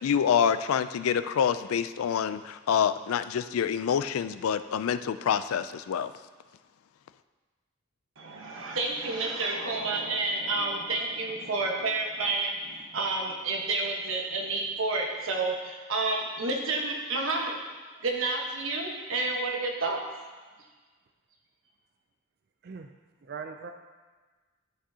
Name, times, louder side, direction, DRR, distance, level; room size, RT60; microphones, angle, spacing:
voice 1, 0.0-6.1, left 8 dB, 90° left, 13 dB, 0.3 m, -27 dB
voice 2, 8.2-17.6 18.0-20.0, right 3 dB, 75° right, 0 dB, 1.2 m, -30 dB
voice 3, 23.2-23.7, right 5 dB, 50° right, 5 dB, 0.4 m, -40 dB
11.5 x 6.0 x 2.8 m, 1.4 s
head